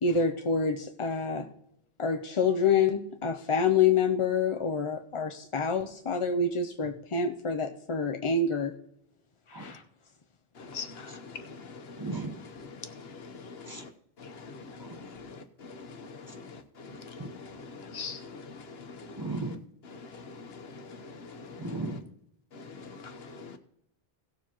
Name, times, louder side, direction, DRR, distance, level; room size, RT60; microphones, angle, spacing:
voice 1, 0.0-1.5 2.0-8.7 9.5-9.8, left 5 dB, 40° left, 0.5 m, -27 dB
voice 2, 10.6-11.2 14.2-14.3 17.0-18.2 21.5-21.6, left 5 dB, 75° left, 1.2 m, -40 dB
voice 3, 12.0-12.3 13.7-13.8 17.2-17.3 19.2-19.6 21.6-22.0, right 2 dB, 20° right, 1.0 m, -35 dB
17.5 x 7.1 x 3.0 m
omnidirectional pair, 1.0 m